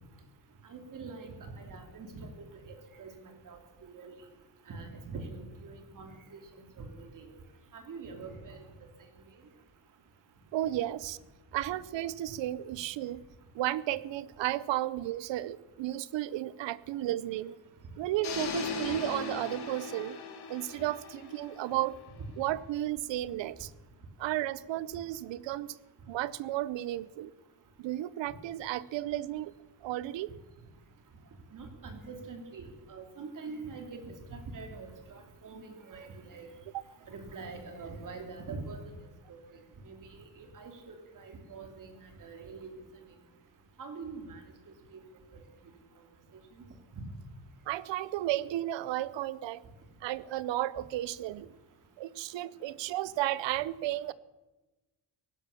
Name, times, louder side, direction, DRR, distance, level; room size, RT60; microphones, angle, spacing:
voice 1, 0.6-4.3 4.7-6.4 6.8-7.3 7.7-8.6 31.5-36.5 37.1-38.8 39.3-39.4 39.8-42.7 43.8-44.4 44.7-45.0 45.3-45.4 46.9-47.1, right 4 dB, 45° right, 5 dB, 3.1 m, -44 dB
voice 2, 10.5-11.2 11.5-13.2 13.5-17.6 18.0-20.2 20.5-22.0 22.4-23.7 24.2-25.8 26.1-27.3 27.8-29.5 29.8-30.3 36.7-36.8 47.7-49.6 50.0-51.5 52.0-54.1, right 14 dB, 85° right, 19 dB, 0.8 m, -33 dB
sound 1, 18.2-22.3, left 4 dB, 65° left, 2.7 m, -38 dB
17.5 x 11.5 x 7.0 m, 1.1 s
cardioid pair, 160°, 43 cm